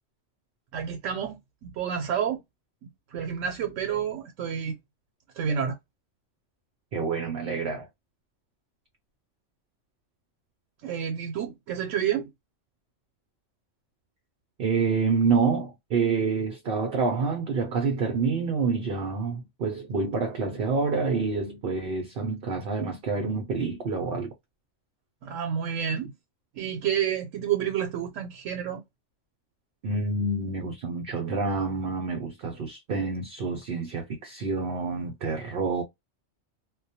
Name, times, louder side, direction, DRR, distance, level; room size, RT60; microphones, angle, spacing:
voice 1, 0.7-2.4 2.8-4.8 5.3-5.8 10.8-12.3 25.2-26.1 26.5-28.8, right 8 dB, 80° right, 0.9 m, -29 dB
voice 2, 6.9-7.9 14.6-24.3 29.8-35.8, right 4 dB, 60° right, 0.6 m, -27 dB
2.2 x 2.2 x 2.7 m
omnidirectional pair, 1.3 m